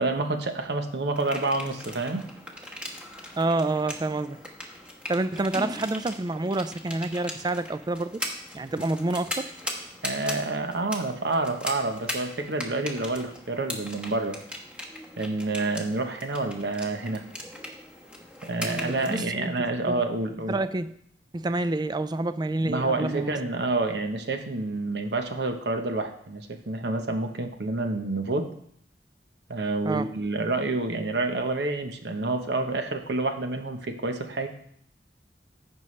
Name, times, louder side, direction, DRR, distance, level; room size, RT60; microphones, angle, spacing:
voice 1, 0.0-2.3 10.0-14.4 15.2-17.2 18.4-20.5 22.6-28.5 29.5-34.5, right 2 dB, 70° right, 5 dB, 1.0 m, -28 dB
sound 1, 1.2-19.2, left 1 dB, 5° right, 1.1 m, -39 dB
voice 2, 3.4-4.4 5.1-8.2 8.5-9.5 18.6-19.5 19.9-20.0 20.5-20.9 21.3-23.4 29.8-30.1, right 2 dB, 25° right, 13 dB, 0.4 m, -28 dB
14.5 x 5.6 x 3.2 m, 0.68 s
head